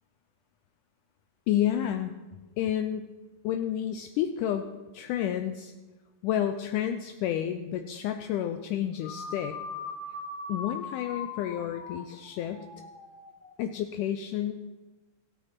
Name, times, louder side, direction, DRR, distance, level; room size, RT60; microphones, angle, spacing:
voice 1, 1.5-2.1 2.6-3.1 3.4-4.7 4.9-5.7 6.2-9.6 10.5-12.7 13.6-14.5, left 10 dB, 90° left, 7 dB, 1.8 m, -30 dB
sound 1, 9.0-13.5, left 4 dB, 60° left, 2.7 m, -40 dB
15.5 x 6.4 x 5.8 m, 1.2 s
omnidirectional pair, 4.2 m